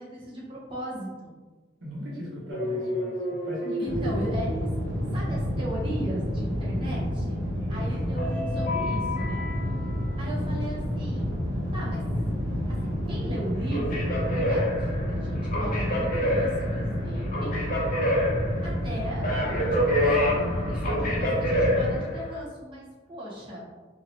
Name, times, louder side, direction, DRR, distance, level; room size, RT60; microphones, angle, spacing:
voice 1, 0.0-1.3 3.8-4.7 5.1-7.4 7.7-9.4 10.2-11.4 11.7-12.0 12.7-17.6 18.6-23.6, right 1 dB, 25° right, -6 dB, 0.8 m, -37 dB
voice 2, 1.8-3.1 3.4-4.3 7.7-7.9, right 1 dB, 90° right, -5 dB, 1.1 m, -37 dB
sound 1, 2.5-5.4 8.2-10.0 13.5-22.4, left 1 dB, 45° left, 0.7 m, -28 dB
sound 2, 3.8-21.9, equal, 70° right, 0.9 m, -29 dB
2.8 x 2.6 x 2.9 m, 1.3 s
head